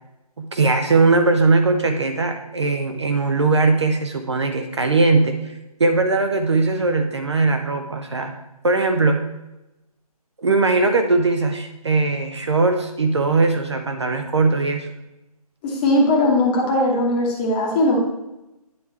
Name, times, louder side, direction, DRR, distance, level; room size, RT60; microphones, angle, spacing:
voice 1, 0.4-5.5 5.8-8.3 8.6-9.2 10.4-14.9, right 3 dB, 45° right, 5 dB, 0.7 m, -19 dB
voice 2, 15.6-18.0, left 1 dB, 15° left, -2 dB, 1.0 m, -19 dB
9.5 x 3.5 x 4.3 m, 0.95 s
figure-of-eight pair, 150°, 20 cm